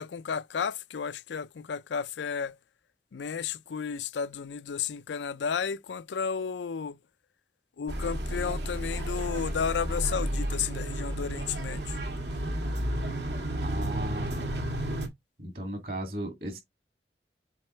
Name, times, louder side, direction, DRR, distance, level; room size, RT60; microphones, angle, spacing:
voice 1, 0.0-2.6 3.1-7.0 7.8-11.9, left 6 dB, 90° left, 0.4 m, -33 dB
sound 1, 7.9-15.1, right 1 dB, 80° right, 1.9 m, -32 dB
voice 2, 13.6-14.5 15.4-16.6, right 1 dB, 55° right, 2.2 m, -36 dB
7.7 x 2.9 x 4.4 m
head